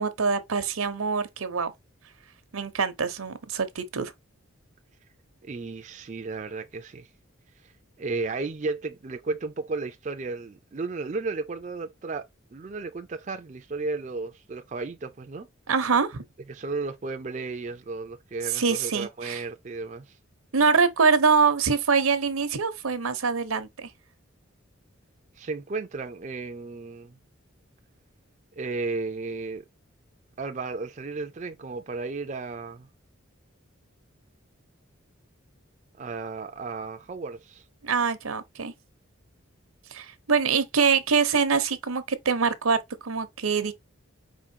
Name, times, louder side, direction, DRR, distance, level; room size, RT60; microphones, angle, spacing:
voice 1, 0.0-1.7 2.5-4.1 15.7-16.2 18.5-19.4 20.5-23.9 37.8-38.7 39.9-43.7, right 5 dB, 85° right, 0.8 m, -24 dB
voice 2, 5.4-7.1 7.6-7.7 8.0-12.2 12.5-15.5 16.5-20.2 25.4-27.2 28.6-29.6 30.4-32.9 36.0-37.6, right 3 dB, 35° right, 0.4 m, -34 dB
5.0 x 3.7 x 2.8 m
head